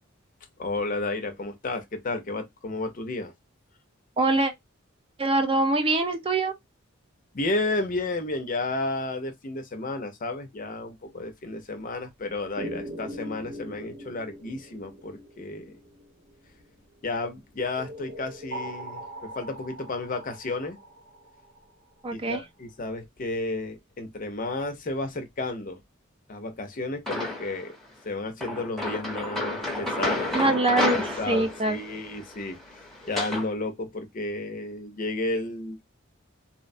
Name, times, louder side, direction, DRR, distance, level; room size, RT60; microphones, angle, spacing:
voice 1, 0.6-3.3 7.3-15.8 17.0-20.8 22.1-25.8 26.3-27.8 28.0-30.4 30.7-32.6 33.1-35.9, left 2 dB, 40° left, 0.5 m, -32 dB
voice 2, 4.2-4.5 5.2-6.5 22.0-22.4 30.3-31.8, right 2 dB, 25° right, 0.4 m, -24 dB
sound 1, 12.6-16.8 17.8-21.6, right 1 dB, 45° right, 0.8 m, -40 dB
sound 2, 27.1-27.7 28.4-33.5, left 2 dB, ahead, 0.7 m, -30 dB
2.8 x 2.1 x 2.6 m
head